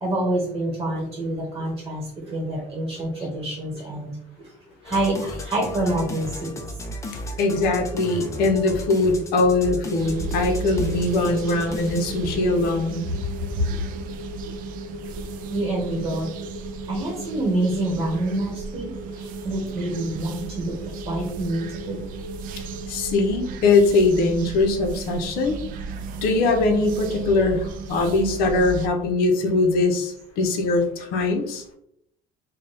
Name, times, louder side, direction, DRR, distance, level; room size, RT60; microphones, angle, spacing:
voice 1, 0.0-4.1 4.8-6.7 13.1-13.2 13.7-13.8 15.5-16.3 16.9-20.7 21.1-22.0, right 1 dB, 20° right, -2 dB, 1.1 m, -27 dB
sound 1, 4.9-12.0, left 2 dB, 20° left, 0.5 m, -35 dB
voice 2, 7.4-13.0 22.9-25.6 26.2-31.6, left 3 dB, 80° left, 4 dB, 0.7 m, -21 dB
sound 2, 7.4-23.3, left 1 dB, 85° right, 0.8 m, -40 dB
sound 3, 10.0-28.9, right 5 dB, 65° right, 0.4 m, -35 dB
4.0 x 2.2 x 3.3 m, 0.74 s
cardioid pair, 135°, 16 cm